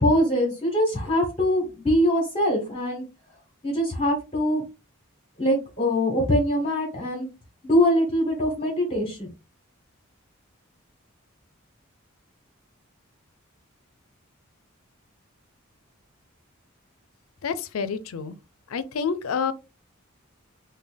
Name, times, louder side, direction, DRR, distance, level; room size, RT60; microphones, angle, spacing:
voice 1, 0.0-3.0 3.6-4.6 5.4-7.3 7.6-9.3, equal, 30° left, 1.1 m, -23 dB
voice 2, 17.4-18.3 18.7-19.5, left 6 dB, 90° left, 0.5 m, -28 dB
3.5 x 2.2 x 3.4 m
head